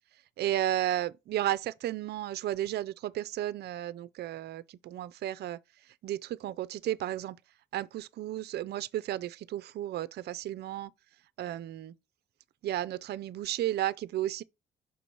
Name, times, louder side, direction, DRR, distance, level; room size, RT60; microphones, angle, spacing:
voice 1, 0.4-5.6 5.9-7.4 7.7-10.9 11.4-11.9 12.6-14.4, right 13 dB, 55° right, 0.4 m, -33 dB
5.8 x 3.1 x 5.2 m
cardioid pair, 90°, 20 cm